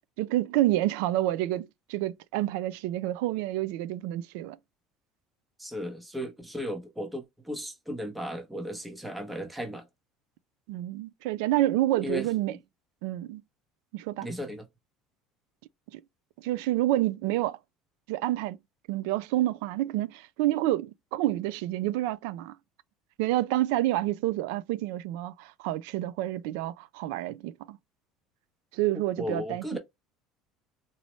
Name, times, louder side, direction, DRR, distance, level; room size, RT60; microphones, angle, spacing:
voice 1, 0.2-4.6 10.7-12.6 13.0-13.4 13.9-14.3 15.9-16.0 16.4-17.6 18.1-18.6 18.9-22.6 23.2-27.8 28.7-29.8, right 15 dB, 80° right, 0.3 m, -28 dB
voice 2, 5.6-9.8 12.0-12.3 14.2-14.6 29.2-29.8, equal, 5° right, 0.7 m, -35 dB
4.0 x 2.0 x 3.0 m
cardioid pair, 160°, 0 cm